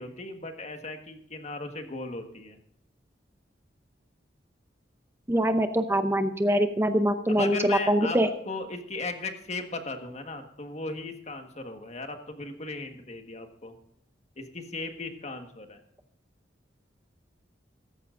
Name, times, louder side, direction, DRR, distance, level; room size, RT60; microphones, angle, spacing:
voice 1, 0.0-2.6 7.3-8.2 8.5-13.7 14.4-15.8, left 3 dB, 35° left, 6 dB, 1.5 m, -37 dB
voice 2, 5.3-8.3, equal, 15° right, 8 dB, 0.6 m, -24 dB
16.0 x 14.5 x 2.6 m, 0.75 s
head